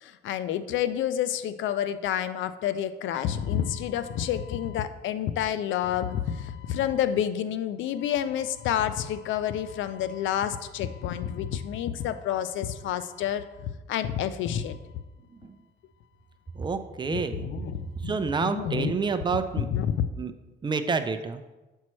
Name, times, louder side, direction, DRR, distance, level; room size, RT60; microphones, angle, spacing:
voice 1, 0.0-13.5 13.9-14.8 17.1-18.1 18.4-18.9 19.7-19.9, left 10 dB, 75° left, 13 dB, 0.4 m, -29 dB
voice 2, 16.5-17.5 17.9-19.7 20.2-20.3 20.6-21.4, right 5 dB, 25° right, 9 dB, 0.4 m, -28 dB
7.2 x 4.5 x 3.1 m, 1.1 s
cardioid pair, 90°, 20 cm